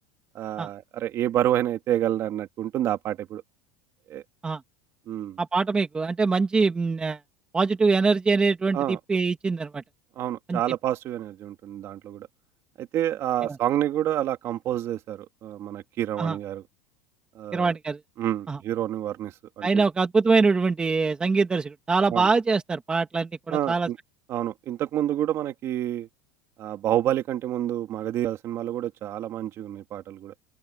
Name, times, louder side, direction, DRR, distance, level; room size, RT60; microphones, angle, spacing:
voice 1, 0.3-3.4 4.1-4.2 5.1-5.4 8.7-9.0 10.2-12.3 12.8-16.6 17.3-17.7 18.2-19.8 22.1-22.3 23.5-24.0 24.3-26.1 26.6-30.3, right 12 dB, 35° right, 2.2 m, -28 dB
voice 2, 5.4-7.2 7.5-9.8 10.5-10.6 13.5-13.6 16.2-16.4 17.5-18.0 18.5-18.6 19.6-23.9, right 4 dB, 10° right, 1.4 m, -23 dB
open air
supercardioid pair, 165°, 9 cm